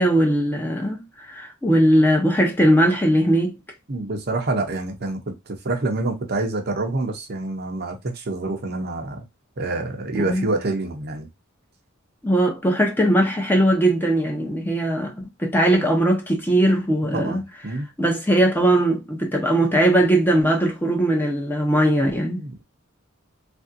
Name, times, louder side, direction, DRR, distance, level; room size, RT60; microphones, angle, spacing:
voice 1, 0.0-3.6 10.1-10.4 12.2-17.4 18.0-22.4, right 1 dB, 10° left, 0.7 m, -19 dB
voice 2, 3.9-9.3 9.6-11.3 17.1-17.9 22.4-22.6, right 2 dB, 50° right, 0.7 m, -27 dB
3.4 x 2.6 x 2.5 m
head